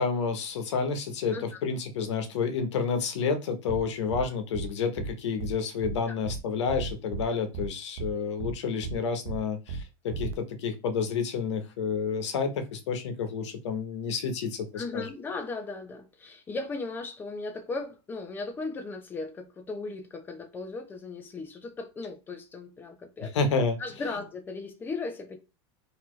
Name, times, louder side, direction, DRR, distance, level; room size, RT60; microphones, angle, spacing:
voice 1, 0.0-15.0 23.2-23.8, left 5 dB, 85° left, 1.0 m, -30 dB
sound 1, 3.7-3.8 4.1-4.2 4.5-4.7 5.0-5.1 5.4-5.5 5.8-6.0 6.3-6.4 6.7-7.2 7.5-7.7 8.0-8.1 8.4-8.5 8.8-9.0 9.3-9.4 9.7-9.8 10.1-10.3, right 5 dB, 55° right, 0.7 m, -34 dB
voice 2, 14.7-23.3 23.8-25.4, left 3 dB, 15° left, 0.6 m, -37 dB
4.1 x 2.8 x 3.1 m
supercardioid pair, 160°, 15 cm